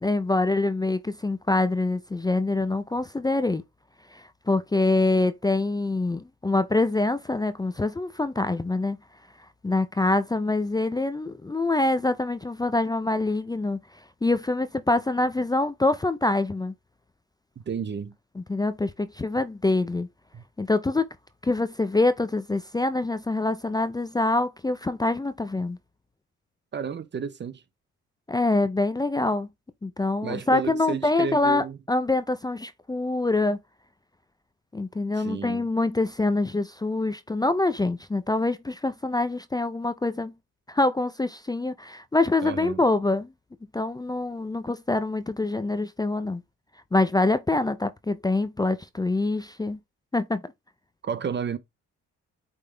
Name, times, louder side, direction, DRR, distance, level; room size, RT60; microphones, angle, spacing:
voice 1, 0.0-3.6 4.1-9.0 9.6-13.8 14.2-16.7 18.4-20.1 20.6-21.0 21.4-25.8 28.3-29.5 29.8-33.6 34.7-40.3 40.7-43.3 43.7-46.4 46.9-49.8 50.1-50.4, left 2 dB, 15° left, 0.5 m, -25 dB
voice 2, 17.7-18.1 20.3-20.4 26.7-27.6 30.2-31.8 35.1-35.7 42.4-42.8 51.0-51.6, right 6 dB, 35° right, 0.7 m, -32 dB
8.4 x 3.6 x 3.3 m
cardioid pair, 90°, 30 cm